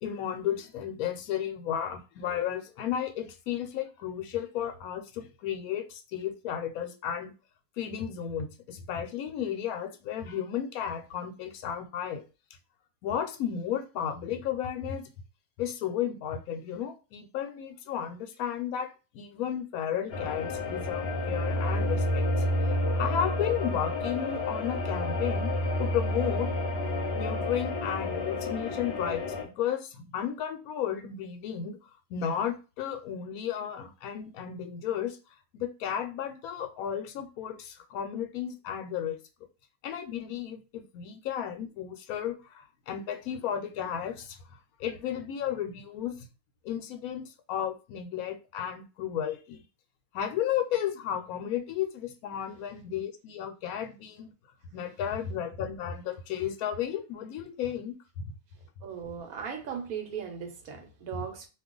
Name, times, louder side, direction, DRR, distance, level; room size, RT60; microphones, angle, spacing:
voice 1, 0.0-7.3 7.8-12.2 13.0-15.0 15.6-22.3 23.0-25.5 25.8-26.5 27.2-29.2 29.6-31.8 32.1-35.2 35.5-39.2 39.8-44.4 44.8-46.1 46.6-49.6 50.1-54.3 54.7-58.3, left 9 dB, 80° left, 1.0 m, -33 dB
sound 1, 20.1-29.4, left 1 dB, 50° left, 0.9 m, -30 dB
voice 2, 58.8-61.5, right 7 dB, 75° right, 1.2 m, -37 dB
2.5 x 2.4 x 3.6 m
omnidirectional pair, 1.5 m